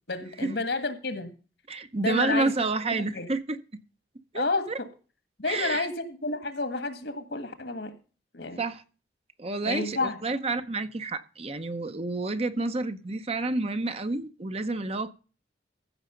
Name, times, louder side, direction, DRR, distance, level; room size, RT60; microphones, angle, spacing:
voice 1, 0.1-1.3 2.0-2.5 2.9-3.3 4.3-4.9 5.4-8.0 8.3-8.6 9.6-10.2, left 3 dB, 70° left, 1.8 m, -30 dB
voice 2, 1.7-3.6 4.3-4.8 5.5-5.9 8.6-8.8 9.4-15.1, right 3 dB, 35° right, 0.8 m, -29 dB
15.0 x 6.4 x 5.1 m
head